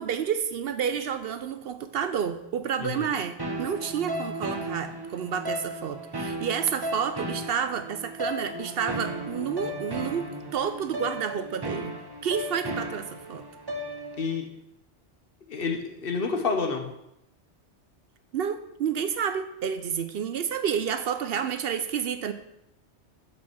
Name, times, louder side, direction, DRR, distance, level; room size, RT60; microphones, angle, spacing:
voice 1, 0.0-12.0 12.2-13.4 18.3-22.3, right 7 dB, 65° right, 10 dB, 0.7 m, -30 dB
sound 1, 3.4-14.4, right 1 dB, 20° right, 0.8 m, -35 dB
voice 2, 15.5-16.8, left 4 dB, 50° left, 4 dB, 1.2 m, -29 dB
6.3 x 6.0 x 6.1 m, 0.84 s
omnidirectional pair, 1.2 m